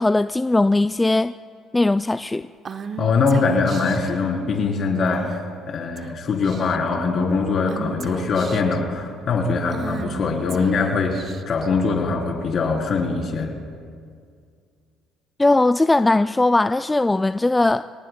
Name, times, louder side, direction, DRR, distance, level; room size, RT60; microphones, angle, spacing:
voice 1, 0.0-1.3 1.7-2.5 15.4-18.0, left 2 dB, 15° left, 12 dB, 0.3 m, -19 dB
Female speech woman speaking / Whispering, 2.6-4.1 5.1-5.5 6.0-6.1 6.4-6.9 7.7-8.8 9.7-11.7, right 6 dB, 45° right, 0.9 m, -36 dB
voice 2, 3.0-5.4 5.7-13.5, left 4 dB, 50° left, 0 dB, 3.7 m, -22 dB
27.0 x 18.5 x 2.3 m, 2.2 s
hypercardioid pair, 60°, 0 cm